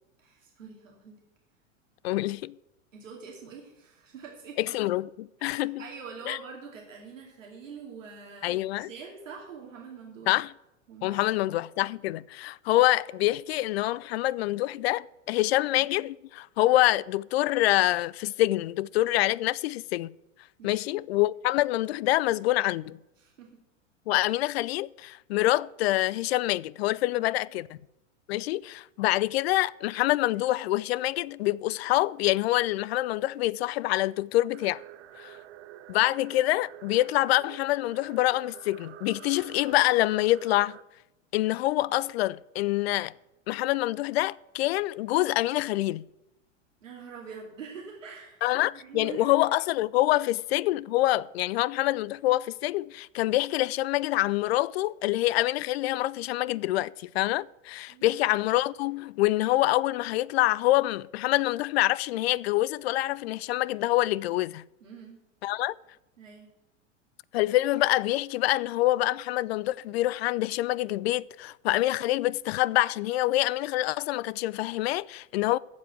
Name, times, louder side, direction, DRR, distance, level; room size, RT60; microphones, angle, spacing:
voice 1, 0.2-1.2 2.9-4.8 5.4-10.3 10.9-11.4 15.8-15.9 20.6-20.8 23.2-23.5 27.2-27.4 46.8-48.4 48.7-49.3 57.9-58.2 64.8-65.2 66.2-66.5, right 5 dB, 80° right, 2.6 m, -45 dB
voice 2, 2.0-2.6 4.6-5.8 6.3-6.4 8.4-8.9 10.3-10.5 11.0-20.1 20.6-23.0 24.1-27.8 28.3-34.8 35.2-35.4 35.9-40.8 41.3-43.1 43.5-46.0 48.4-64.6 65.4-65.7 67.3-75.6, left 16 dB, 55° left, 0.5 m, -26 dB
sound 1, 34.5-40.8, right 13 dB, 60° right, 0.9 m, -48 dB
15.0 x 5.0 x 8.1 m
hypercardioid pair, 100°, 38 cm